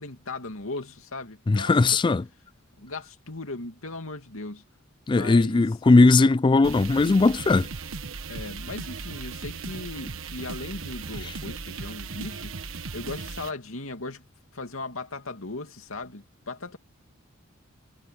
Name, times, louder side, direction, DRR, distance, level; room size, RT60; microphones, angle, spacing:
voice 1, 0.0-1.7 2.8-4.6 5.1-5.7 8.3-12.5 12.9-14.3 14.5-16.8, left 2 dB, 85° left, 2.6 m, -37 dB
voice 2, 1.5-2.2 5.1-7.7, left 3 dB, 25° left, 0.3 m, -19 dB
sound 1, 6.6-13.5, right 4 dB, 70° right, 1.3 m, -37 dB
head